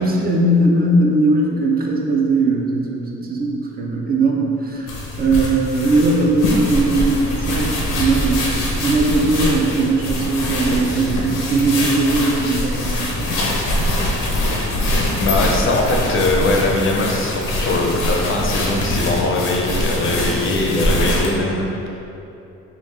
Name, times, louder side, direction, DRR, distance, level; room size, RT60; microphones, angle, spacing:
voice 1, 0.0-13.3, right 2 dB, 30° right, -1 dB, 0.4 m, -19 dB
sound 1, 4.9-21.4, left 1 dB, 85° left, 0.7 m, -23 dB
sound 2, 7.0-13.0 13.4-13.5 14.6-14.7 14.9-15.2, right 1 dB, 75° right, 1.1 m, -33 dB
voice 2, 15.2-22.0, left 2 dB, 45° left, 0 dB, 0.5 m, -21 dB
3.6 x 2.3 x 3.1 m, 2.8 s
cardioid pair, 90°, 30 cm